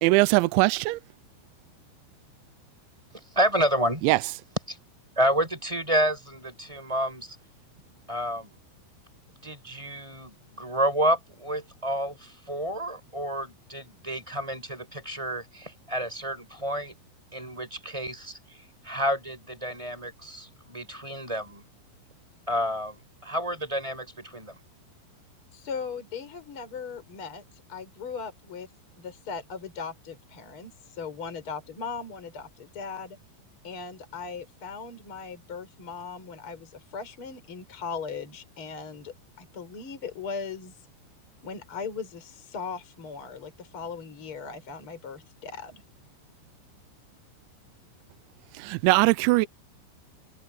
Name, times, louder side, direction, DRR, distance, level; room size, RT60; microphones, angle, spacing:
voice 1, 0.0-1.0 4.0-4.2 48.6-49.5, right 21 dB, 80° right, 2.8 m, -21 dB
voice 2, 3.3-4.0 4.7-4.8 5.2-7.3 8.1-8.5 9.4-16.9 17.3-18.4 18.8-21.6 22.5-24.5, equal, 5° right, 5.0 m, -29 dB
voice 3, 25.5-27.4 27.7-28.7 29.0-33.2 33.6-40.7 41.4-45.8, left 5 dB, 25° left, 5.3 m, -38 dB
omnidirectional pair, 5.6 m